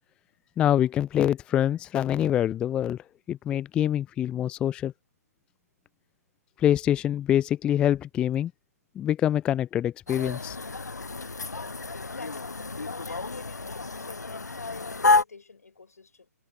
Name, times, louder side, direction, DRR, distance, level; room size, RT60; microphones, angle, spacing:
voice 1, 0.6-3.0 3.3-4.9 6.6-8.5 9.0-10.6, left 11 dB, 10° left, 0.4 m, -25 dB
sound 1, 10.1-15.2, left 3 dB, 85° left, 0.4 m, -29 dB
voice 2, 11.9-16.3, left 4 dB, 70° left, 6.0 m, -45 dB
figure-of-eight pair, 130°, 9 cm